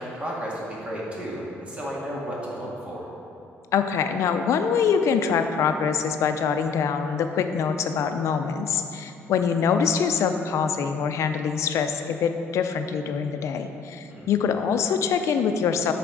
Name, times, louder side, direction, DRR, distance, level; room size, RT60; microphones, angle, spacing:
voice 1, 0.0-3.1 14.1-14.3, equal, 25° right, -5 dB, 1.9 m, -33 dB
voice 2, 3.7-15.9, left 6 dB, 75° left, 7 dB, 0.5 m, -24 dB
7.9 x 4.2 x 6.3 m, 2.7 s
cardioid pair, 115°, 5 cm